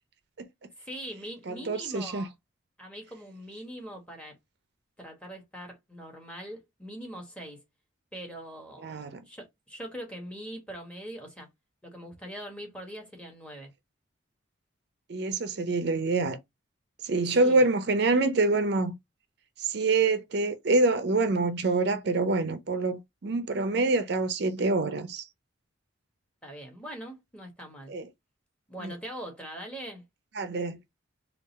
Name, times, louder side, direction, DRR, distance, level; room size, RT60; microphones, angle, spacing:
voice 1, 0.8-2.3 2.8-4.3 5.0-7.6 8.1-9.0 9.3-11.5 11.8-13.7 17.1-17.6 26.4-27.9 28.7-30.0, equal, 5° left, 1.1 m, -42 dB
voice 2, 1.5-2.3 8.8-9.2 15.1-16.4 17.0-18.9 19.6-25.3 27.9-28.1 28.8-28.9 30.4-30.8, right 3 dB, 55° right, 0.5 m, -26 dB
3.7 x 2.4 x 4.0 m
head